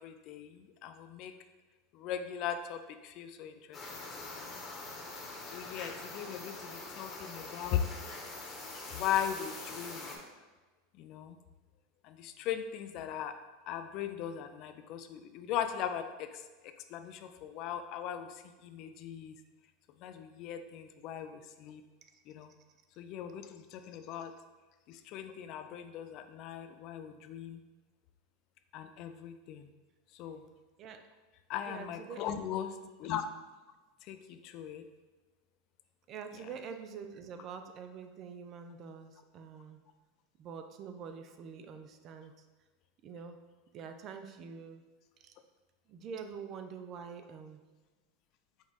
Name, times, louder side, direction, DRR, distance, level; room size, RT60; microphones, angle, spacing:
voice 1, 0.0-1.3 1.9-4.0 4.3-4.5 5.5-7.8 8.9-10.2 10.9-11.4 12.0-13.4 13.7-19.3 20.0-21.8 22.3-22.5 23.0-24.3 24.9-27.6 28.7-29.7 30.1-30.4 31.5-32.7 33.0-33.2 34.0-34.9, left 9 dB, 55° left, 9 dB, 0.3 m, -39 dB
sound 1, 3.7-10.2, left 3 dB, 25° left, 1.0 m, -44 dB
voice 2, 31.6-32.4 36.1-39.8 40.4-42.3 43.0-43.4 43.7-44.8 45.2-45.3 45.9-47.6, right 6 dB, 45° right, 7 dB, 0.4 m, -45 dB
5.2 x 2.4 x 3.9 m, 1.3 s
hypercardioid pair, 100°, 0 cm